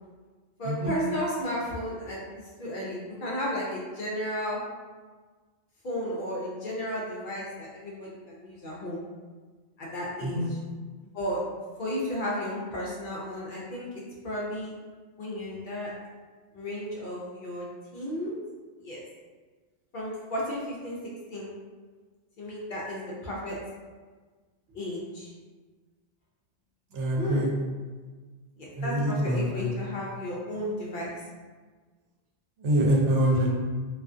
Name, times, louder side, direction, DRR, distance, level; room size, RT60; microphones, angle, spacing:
voice 1, 0.6-4.6 5.8-9.0 9.8-10.6 11.0-11.4 11.8-14.7 15.2-15.9 16.5-17.6 17.9-18.4 18.8-19.0 19.9-21.0 21.3-21.5 22.4-23.6 24.7-25.3 27.2-27.5 28.6-31.1, equal, 60° left, -4 dB, 0.6 m, -33 dB
voice 2, 26.9-27.5 28.8-29.7 32.6-33.5, equal, 80° right, -2 dB, 0.9 m, -25 dB
2.4 x 2.3 x 2.4 m, 1.4 s
omnidirectional pair, 1.2 m